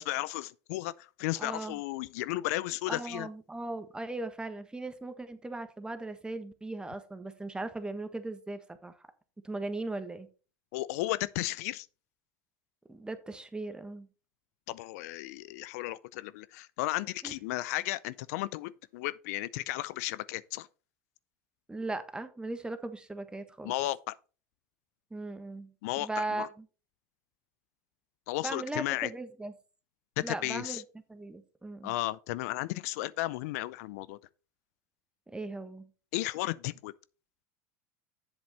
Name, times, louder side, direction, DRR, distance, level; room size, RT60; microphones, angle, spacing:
voice 1, 0.0-3.3 10.7-11.9 14.7-20.7 23.6-24.1 25.8-26.5 28.3-29.1 30.2-30.8 31.8-34.2 36.1-36.9, left 17 dB, 75° left, 0.4 m, -34 dB
voice 2, 1.4-1.8 2.9-9.1 9.4-10.3 12.9-14.1 17.2-17.3 21.7-23.7 25.1-26.6 28.4-29.5 30.2-30.8 31.1-32.0 35.3-35.9, right 2 dB, 10° right, 1.3 m, -38 dB
8.0 x 7.1 x 4.2 m
hypercardioid pair, 85°, 8 cm